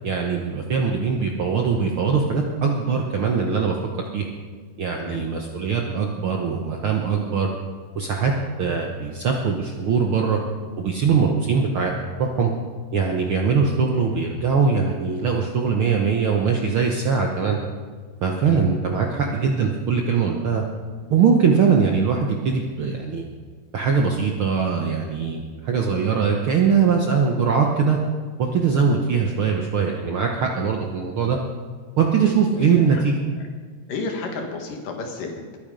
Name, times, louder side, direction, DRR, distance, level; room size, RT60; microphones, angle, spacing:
voice 1, 0.0-4.3 4.8-7.5 7.9-8.3 8.6-10.4 10.8-11.9 12.2-12.5 12.9-17.6 18.2-20.6 21.1-23.2 23.7-28.0 28.4-31.4 32.0-33.1, right 5 dB, 70° right, 1 dB, 1.3 m, -21 dB
voice 2, 32.6-33.0 33.9-35.6, left 3 dB, 90° left, 2 dB, 3.6 m, -31 dB
21.5 x 8.9 x 5.2 m, 1.5 s
omnidirectional pair, 3.7 m